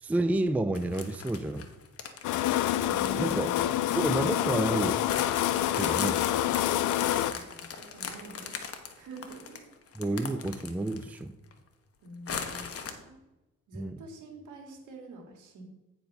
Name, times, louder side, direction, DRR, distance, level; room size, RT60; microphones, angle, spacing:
voice 1, 0.0-1.6 3.2-3.5 3.9-5.0 5.7-6.2 10.0-11.3 13.7-14.0, right 2 dB, 5° right, 10 dB, 0.4 m, -30 dB
sound 1, 0.7-4.5 5.1-11.2 11.5-11.6 12.3-12.9, left 6 dB, 50° left, 1.2 m, -39 dB
sound 2, 2.2-7.3, left 13 dB, 80° left, 0.5 m, -27 dB
voice 2, 2.8-4.0 7.0-8.6 9.0-9.6 10.0-10.3 12.0-13.2 13.7-15.6, right 2 dB, 80° right, 2 dB, 2.1 m, -46 dB
9.1 x 4.6 x 5.4 m, 1.0 s
cardioid pair, 90°, 30 cm